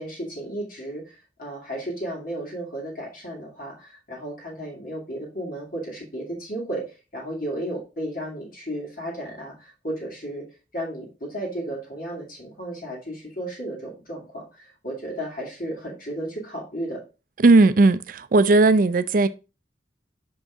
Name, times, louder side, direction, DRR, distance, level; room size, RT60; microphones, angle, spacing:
voice 1, 0.0-10.5 10.7-17.0, right 1 dB, 50° left, 2.3 m, -34 dB
voice 2, 17.4-19.3, right 3 dB, 50° right, 0.4 m, -16 dB
6.0 x 5.4 x 3.6 m
head